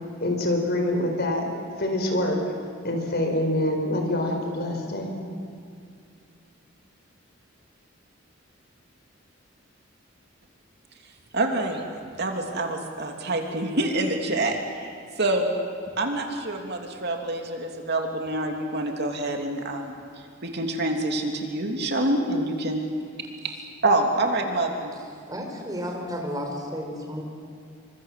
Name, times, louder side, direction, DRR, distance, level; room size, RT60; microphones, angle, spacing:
voice 1, 0.2-1.5 1.8-2.4 2.8-5.1, left 1 dB, 55° left, 3 dB, 4.9 m, -25 dB
voice 2, 11.3-11.8 12.2-15.5 16.0-20.0 20.4-22.8 23.4-23.6 23.8-24.9, right 2 dB, 55° right, 3 dB, 2.9 m, -26 dB
voice 3, 25.3-27.2, equal, 20° right, 2 dB, 4.7 m, -32 dB
27.5 x 25.0 x 7.6 m, 2.4 s
head